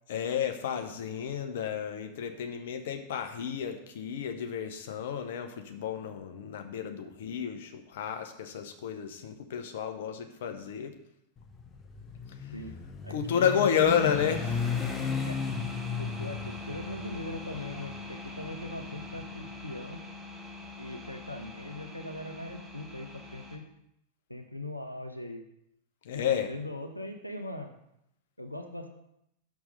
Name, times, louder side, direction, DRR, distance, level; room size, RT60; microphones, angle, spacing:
voice 1, 0.1-10.9 12.4-12.5 13.1-14.7 26.0-26.5, left 8 dB, 55° left, 5 dB, 0.9 m, -31 dB
Motorcycle, 11.4-19.6, left 6 dB, 20° left, 0.8 m, -36 dB
voice 2, 13.0-14.0 15.2-15.4 16.0-20.0 20.8-23.6 24.3-25.5 26.1-27.7 28.4-28.9, left 1 dB, 90° left, 5 dB, 0.7 m, -40 dB
sound 1, 13.8-23.6, left 3 dB, 15° right, 1.3 m, -42 dB
6.3 x 5.9 x 5.5 m, 0.79 s
figure-of-eight pair, 90°, 0 cm